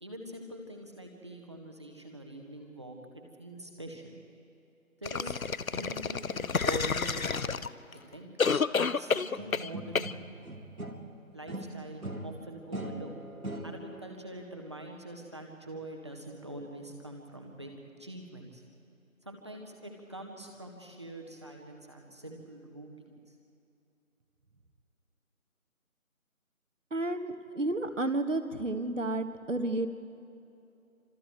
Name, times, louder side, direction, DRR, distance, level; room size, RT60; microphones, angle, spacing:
voice 1, 0.0-4.1 5.0-7.6 7.9-8.3 8.8-10.2 11.3-13.1 13.6-18.6 19.2-23.4, right 1 dB, 20° right, 2 dB, 1.6 m, -44 dB
sound 1, 5.0-7.9 8.4-9.7 9.9-10.1, left 5 dB, 70° left, 0.8 m, -29 dB
sound 2, 9.4-11.2 11.5-14.1, right 1 dB, 75° right, 2.4 m, -40 dB
voice 2, 26.9-29.9, right 2 dB, 60° right, 8 dB, 1.8 m, -31 dB
28.5 x 26.5 x 4.6 m, 2.8 s
figure-of-eight pair, 170°, 43 cm